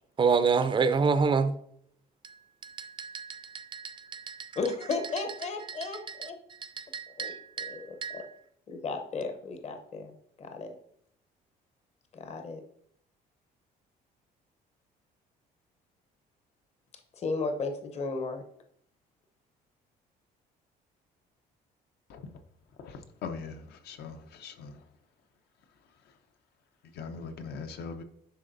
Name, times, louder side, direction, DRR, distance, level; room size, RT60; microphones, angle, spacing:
voice 1, 0.2-1.5 2.6-4.5 6.8-8.2, right 5 dB, 30° right, 0.4 m, -28 dB
voice 2, 4.6-6.4 7.1-8.2 8.7-10.8 12.1-12.6 17.1-18.4, left 3 dB, 40° left, 0.8 m, -35 dB
voice 3, 23.2-23.6 23.9-24.2 24.4-24.7 27.0-28.0, left 5 dB, 70° left, 0.8 m, -39 dB
10.0 x 3.8 x 2.6 m
cardioid pair, 110°, 17 cm